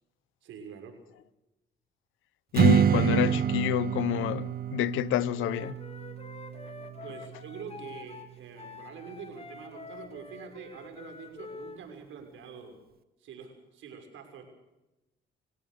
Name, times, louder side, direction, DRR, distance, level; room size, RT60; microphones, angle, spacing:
voice 1, 0.4-1.0 7.0-12.8 13.2-14.4, right 6 dB, 80° right, 6.2 m, -45 dB
voice 2, 2.5-5.8, left 15 dB, 85° left, 0.8 m, -28 dB
Strum, 2.5-7.8, right 9 dB, 50° right, 0.9 m, -28 dB
Wind instrument woodwind instrument, 5.3-11.8, left 4 dB, 30° left, 3.1 m, -46 dB
27.0 x 16.5 x 6.6 m
cardioid pair, 90°, 20 cm